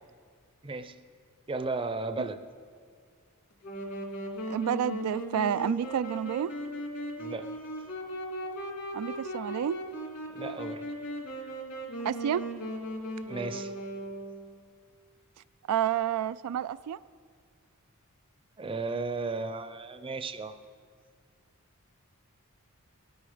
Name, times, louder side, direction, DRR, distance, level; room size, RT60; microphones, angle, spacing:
voice 1, 0.6-1.0 1.5-2.4 4.5-4.6 7.2-7.5 8.9-9.0 10.3-10.8 13.3-13.7 18.6-20.5, right 3 dB, 25° right, 10 dB, 0.6 m, -34 dB
Wind instrument woodwind instrument, 3.6-14.5, right 1 dB, 70° left, 2.6 m, -38 dB
voice 2, 4.5-6.5 8.9-9.8 12.0-12.4 15.7-17.0, right 9 dB, 85° right, 14 dB, 0.3 m, -29 dB
21.0 x 8.9 x 5.0 m, 2.1 s
head